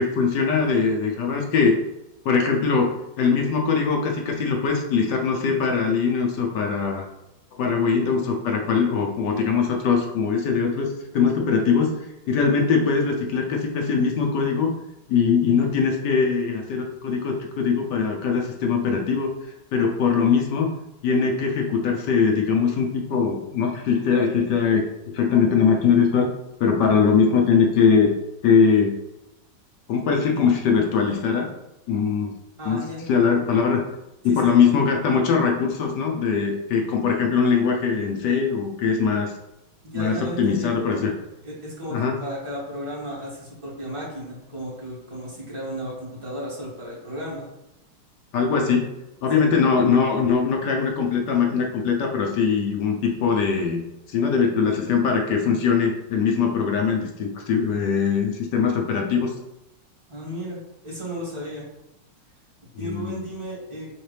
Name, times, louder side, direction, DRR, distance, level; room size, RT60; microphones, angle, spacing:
voice 1, 0.0-1.8 2.2-7.0 7.6-11.9 12.3-14.7 15.1-20.7 21.0-26.3 26.6-28.1 28.4-28.9 29.9-31.5 31.9-32.3 32.7-33.8 34.2-39.3 39.9-41.1 41.9-42.1 48.3-48.9 49.2-59.3 62.8-63.1, left 5 dB, 70° left, 1 dB, 1.1 m, -21 dB
voice 2, 32.6-33.1 34.2-34.5 39.8-41.1 41.4-47.5 49.3-49.5 60.1-61.6 62.8-63.9, equal, 15° right, -7 dB, 1.5 m, -34 dB
4.4 x 3.6 x 3.3 m, 0.92 s
omnidirectional pair, 2.3 m